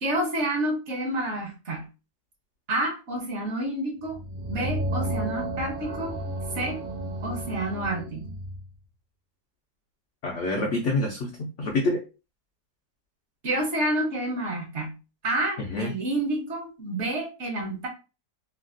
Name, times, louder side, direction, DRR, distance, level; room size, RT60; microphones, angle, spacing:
voice 1, 0.0-1.9 2.7-4.2 4.5-6.2 6.5-6.8 7.2-8.3 13.4-14.9 15.2-17.9, right 1 dB, 55° right, 2 dB, 0.9 m, -29 dB
sound 1, 4.0-8.6, right 1 dB, 30° right, 0.4 m, -32 dB
voice 2, 10.2-12.0 15.6-15.9, left 2 dB, 70° left, 1 dB, 0.7 m, -27 dB
3.2 x 2.2 x 2.5 m, 0.30 s
omnidirectional pair, 1.8 m